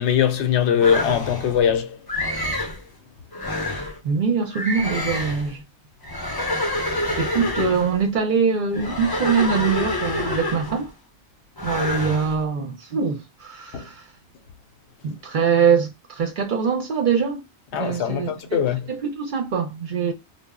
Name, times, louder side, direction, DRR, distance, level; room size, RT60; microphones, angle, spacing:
voice 1, 0.0-2.0 13.7-13.9 17.7-18.9, left 8 dB, 80° left, 0.9 m, -21 dB
sound 1, 0.8-1.6 2.1-2.8 3.3-4.0 4.5-5.5 6.0-8.0 8.7-10.9 11.6-12.4, left 1 dB, 30° left, 0.5 m, -27 dB
voice 2, 3.6-5.6 7.2-10.9 11.6-14.0 15.0-17.4 17.7-18.6 18.9-20.1, right 6 dB, 55° right, 0.7 m, -23 dB
2.0 x 2.0 x 3.5 m
omnidirectional pair, 1.1 m